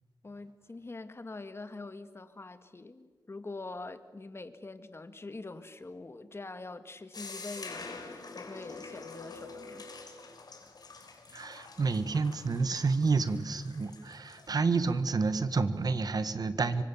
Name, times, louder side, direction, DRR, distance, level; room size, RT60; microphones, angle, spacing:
voice 1, 0.2-9.8, left 3 dB, 35° left, 10 dB, 1.9 m, -44 dB
sound 1, 7.1-14.5, left 4 dB, 70° left, 4.1 m, -46 dB
voice 2, 11.3-16.8, right 4 dB, 65° right, 12 dB, 1.6 m, -29 dB
26.5 x 24.5 x 7.2 m, 1.4 s
wide cardioid pair, 75°, 7 cm